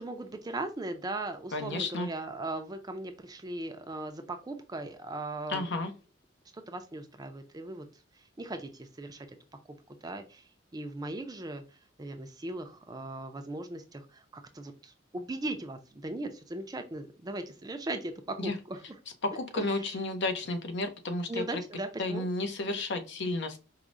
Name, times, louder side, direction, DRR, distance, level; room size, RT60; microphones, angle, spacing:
voice 1, 0.0-5.7 6.5-7.9 8.4-9.3 10.0-10.4 10.7-11.6 12.0-19.0 19.5-19.9 21.3-22.3, right 2 dB, 20° right, 6 dB, 0.4 m, -38 dB
voice 2, 1.5-2.1 5.5-5.9 18.4-18.6 19.2-21.6 22.0-23.6, left 2 dB, 65° left, 7 dB, 0.6 m, -32 dB
4.6 x 2.1 x 2.5 m, 0.32 s
head